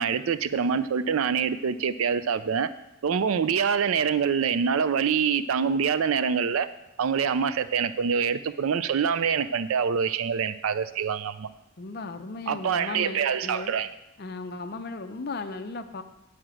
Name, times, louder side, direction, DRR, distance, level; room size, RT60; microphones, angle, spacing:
voice 1, 0.0-2.7 3.0-6.7 7.0-11.5 12.5-13.9, right 6 dB, 75° right, 14 dB, 0.4 m, -25 dB
voice 2, 11.8-13.7 14.2-16.0, left 3 dB, 45° left, 8 dB, 0.6 m, -36 dB
9.7 x 4.9 x 7.6 m, 0.87 s
head